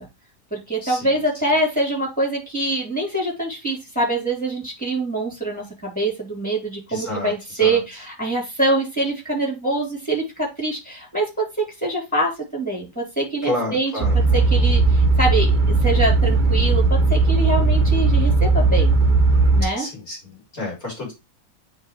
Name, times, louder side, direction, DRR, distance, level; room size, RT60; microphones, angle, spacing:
voice 1, 0.5-14.0 14.3-19.0 19.5-19.9, right 2 dB, 5° left, -2 dB, 3.5 m, -24 dB
voice 2, 6.9-7.8 13.4-14.2 19.8-21.1, left 2 dB, 35° left, -2 dB, 4.0 m, -30 dB
sound 1, 14.0-19.6, right 3 dB, 45° right, 0.6 m, -17 dB
9.4 x 3.5 x 3.2 m, 0.25 s
omnidirectional pair, 1.9 m